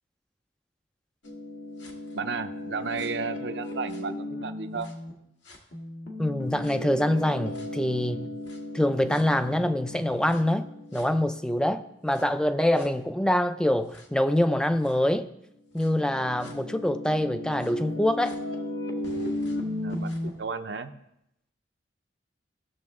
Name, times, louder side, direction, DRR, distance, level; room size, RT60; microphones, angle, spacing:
sound 1, 1.2-5.1 5.5-11.6 12.1-12.2 12.8-12.9 13.9-14.0 14.8-14.9 15.8-20.3, left 1 dB, 70° left, 1.8 m, -36 dB
voice 1, 2.1-4.9 19.5-19.6 19.8-20.9, right 4 dB, 65° right, 9 dB, 0.7 m, -33 dB
voice 2, 6.2-8.3 8.7-10.7 10.9-15.3 15.7-18.4, left 1 dB, 5° left, 10 dB, 0.4 m, -25 dB
17.0 x 6.8 x 3.6 m, 0.81 s
head